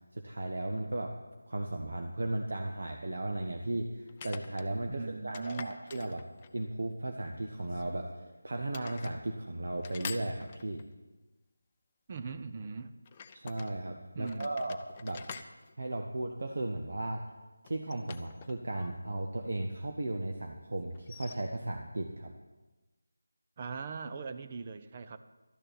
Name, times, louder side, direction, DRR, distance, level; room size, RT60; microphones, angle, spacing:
voice 1, 0.1-1.1 1.5-6.2 6.5-8.1 8.4-10.8 13.3-15.2 15.8-17.2 17.6-22.3, right 1 dB, 60° right, 2 dB, 1.1 m, -36 dB
sound 1, 2.0-2.1 4.1-4.7 5.3-6.7 7.6-8.3 8.7-9.2 9.8-10.9 13.1-13.7 14.2-16.6 17.7-18.9 19.2-19.3 20.9-21.4, left 6 dB, 20° left, 0.5 m, -47 dB
voice 2, 4.9-5.8 12.1-12.9 14.1-14.6 23.6-25.2, right 4 dB, 30° right, 9 dB, 0.6 m, -40 dB
12.5 x 6.7 x 9.3 m, 1.2 s
figure-of-eight pair, 160°, 0 cm